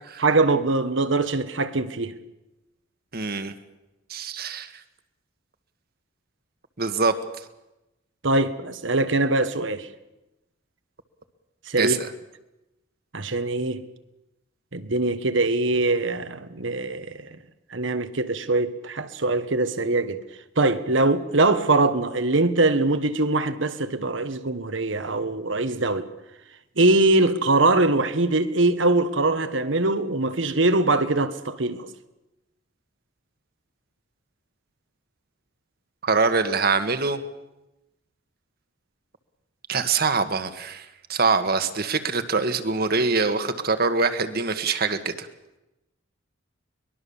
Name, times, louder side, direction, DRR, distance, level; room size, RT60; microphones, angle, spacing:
voice 1, 0.2-2.1 8.2-9.9 11.7-12.0 13.1-13.8 14.7-17.4 17.7-20.2 20.6-26.1 26.8-31.9, right 2 dB, 65° right, 1.4 m, -22 dB
voice 2, 3.1-3.5 4.1-4.7 6.8-7.1 11.8-12.1 36.0-37.2 39.7-45.3, right 4 dB, 50° right, 1.6 m, -24 dB
23.0 x 21.0 x 7.1 m
head